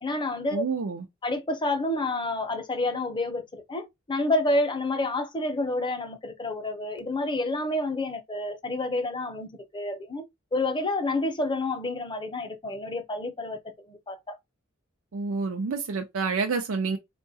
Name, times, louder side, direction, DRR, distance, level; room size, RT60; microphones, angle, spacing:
voice 1, 0.0-0.6 1.2-10.3 10.5-13.6 13.9-14.4, left 2 dB, 25° left, 0.6 m, -29 dB
voice 2, 0.5-1.1 15.1-17.0, right 4 dB, 85° right, 0.5 m, -28 dB
4.5 x 2.2 x 2.7 m
head